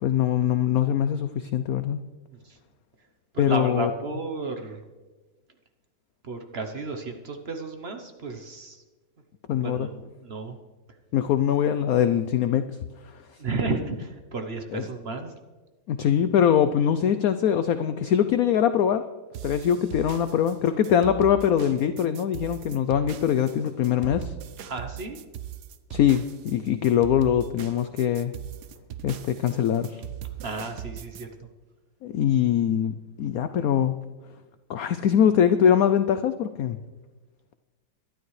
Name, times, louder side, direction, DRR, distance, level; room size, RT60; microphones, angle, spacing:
voice 1, 0.0-2.0 3.4-3.9 9.5-9.9 11.1-12.8 13.1-13.2 14.7-14.8 15.9-19.0 19.4-24.3 25.9-28.3 29.0-30.0 32.0-34.0 34.7-36.8, left 9 dB, 80° left, 11 dB, 0.8 m, -23 dB
voice 2, 3.3-4.8 6.2-8.8 9.6-10.6 13.4-15.4 24.6-25.2 30.4-31.5, right 3 dB, 45° right, 5 dB, 0.8 m, -33 dB
sound 1, 19.3-31.2, right 11 dB, 70° right, 1.1 m, -39 dB
22.5 x 11.5 x 3.2 m, 1.2 s
omnidirectional pair, 2.1 m